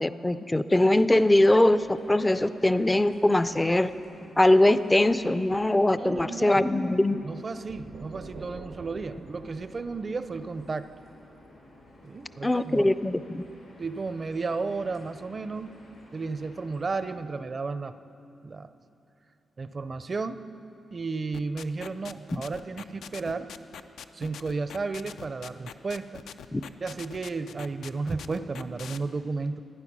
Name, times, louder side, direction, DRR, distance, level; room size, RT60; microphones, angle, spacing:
voice 1, 0.0-3.9 4.4-7.2 12.4-13.5 26.5-26.6, left 1 dB, 15° left, 13 dB, 0.4 m, -22 dB
sound 1, 1.2-17.1, left 1 dB, 70° left, 3.9 m, -53 dB
voice 2, 6.0-6.6 7.2-10.9 12.0-12.9 13.8-15.7 16.1-18.0 18.4-18.7 19.6-20.5 20.9-23.5 24.1-26.2 26.8-29.6, right 4 dB, 40° right, 12 dB, 0.5 m, -33 dB
sound 2, 7.7-11.4, right 4 dB, 90° right, 0.9 m, -47 dB
sound 3, 21.3-29.0, left 7 dB, 85° left, 0.4 m, -43 dB
14.5 x 9.8 x 6.1 m, 2.7 s
cardioid pair, 85°, 0 cm